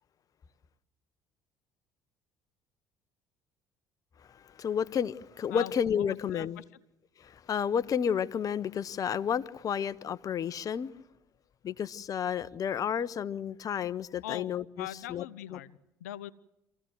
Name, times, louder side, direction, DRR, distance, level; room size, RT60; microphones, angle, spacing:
voice 1, 4.3-6.6 7.2-10.9 11.6-15.3 15.5-15.6, left 8 dB, 45° left, 0.9 m, -31 dB
voice 2, 5.5-6.6 14.2-16.3, left 13 dB, 85° left, 0.7 m, -42 dB
25.5 x 16.0 x 7.9 m
hypercardioid pair, 65°, 8 cm